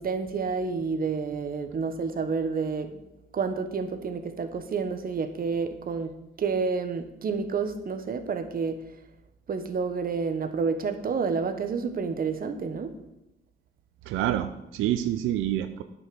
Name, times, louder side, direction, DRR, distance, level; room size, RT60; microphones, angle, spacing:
voice 1, 0.0-3.0 3.3-6.1 6.4-8.8 9.5-13.0, right 5 dB, 45° right, 9 dB, 1.3 m, -29 dB
voice 2, 14.1-15.8, right 12 dB, 90° right, 9 dB, 0.6 m, -27 dB
9.7 x 6.1 x 7.0 m, 0.90 s
cardioid pair, 90°, 20 cm